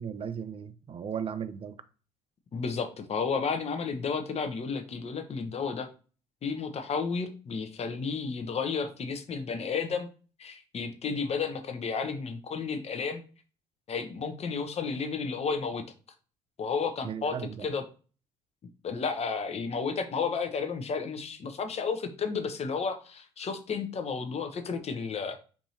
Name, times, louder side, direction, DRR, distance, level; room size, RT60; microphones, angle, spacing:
voice 1, 0.0-1.8 17.0-17.7, right 7 dB, 35° right, 0.5 m, -36 dB
voice 2, 2.5-5.9 6.4-10.1 10.4-13.2 13.9-15.8 16.6-17.4 17.6-17.8 18.8-25.4, left 5 dB, 40° left, 0.8 m, -32 dB
4.7 x 2.7 x 2.8 m
hypercardioid pair, 55°, 17 cm